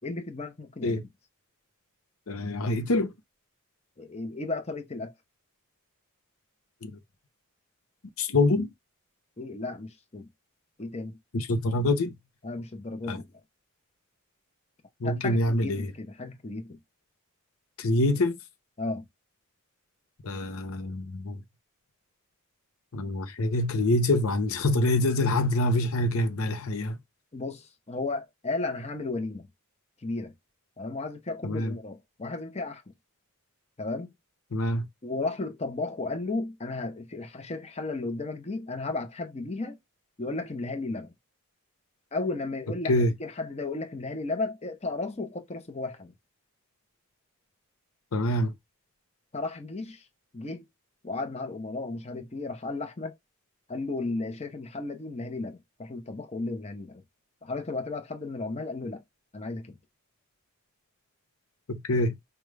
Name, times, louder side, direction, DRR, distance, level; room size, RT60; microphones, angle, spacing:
voice 1, 0.0-1.0 4.0-5.1 9.4-10.3 10.8-11.2 12.4-13.3 15.0-16.8 18.8-19.1 27.3-29.5 30.0-30.3 30.8-32.8 33.8-34.1 35.0-39.8 40.2-41.1 42.1-46.1 49.3-50.1 50.3-50.7 51.0-53.2 53.7-57.0 57.4-59.0 59.3-59.8, left 3 dB, 30° left, 0.7 m, -34 dB
voice 2, 2.3-3.1 6.8-6.9 8.2-8.7 11.3-12.1 13.1-13.2 15.0-15.9 17.8-18.4 20.2-21.4 22.9-27.0 31.4-31.7 34.5-34.8 42.9-43.1 48.1-48.5 61.7-62.2, left 1 dB, 70° left, 0.7 m, -25 dB
5.0 x 2.3 x 3.2 m
head